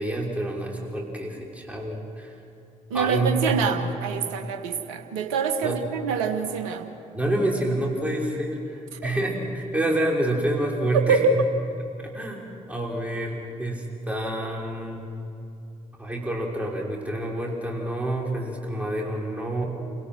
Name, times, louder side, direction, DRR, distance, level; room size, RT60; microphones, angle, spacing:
voice 1, 0.0-2.3 2.9-3.7 5.6-5.8 7.1-11.5 12.0-15.1 16.0-19.7, right 1 dB, 10° right, -2 dB, 5.8 m, -28 dB
voice 2, 2.9-6.9 9.0-9.1 10.9-11.3, right 5 dB, 75° right, 7 dB, 1.3 m, -25 dB
28.5 x 17.5 x 6.3 m, 2.7 s
figure-of-eight pair, 40°, 18 cm